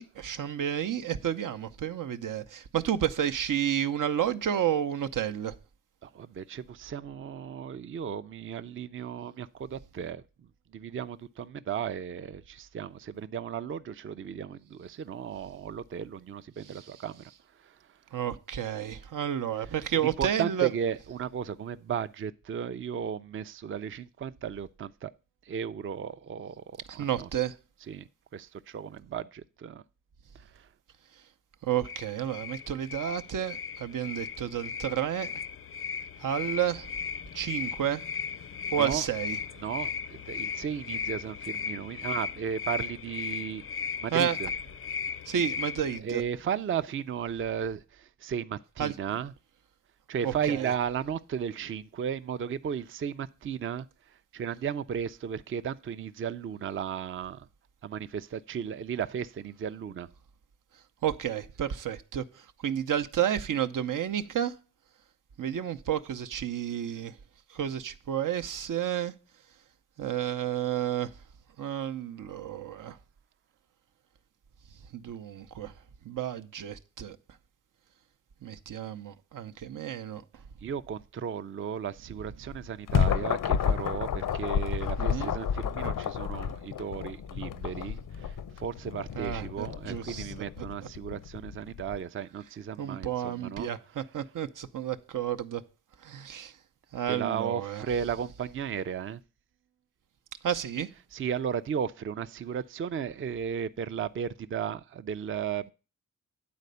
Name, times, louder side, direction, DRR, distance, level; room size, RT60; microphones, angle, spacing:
voice 1, 0.0-5.6 16.6-16.9 18.1-20.7 26.9-27.5 31.6-35.3 36.2-36.9 37.3-38.0 38.7-39.4 44.1-44.4 45.3-46.2 48.8-48.9 50.2-50.7 61.0-62.2 62.6-64.6 65.4-67.1 67.5-69.1 70.0-71.1 71.6-73.0 74.9-75.7 76.0-77.2 78.4-80.2 85.0-85.4 89.1-90.7 92.8-95.6 96.0-96.5 96.9-97.8 100.4-100.9, right 10 dB, 80° right, 0.7 m, -31 dB
voice 2, 6.0-10.2 10.7-17.2 17.6-17.7 19.9-25.1 25.5-27.3 27.9-29.8 30.6-30.7 38.8-39.1 39.6-43.6 44.0-44.5 46.0-49.3 50.1-53.9 54.3-57.5 57.8-60.1 80.6-93.7 97.1-99.2 101.1-105.7, right 8 dB, 40° right, 0.4 m, -35 dB
sound 1, 31.8-46.0, left 6 dB, 45° left, 0.4 m, -37 dB
sound 2, 82.5-92.0, left 8 dB, 80° left, 0.6 m, -31 dB
9.5 x 4.2 x 6.6 m
wide cardioid pair, 95°, 32 cm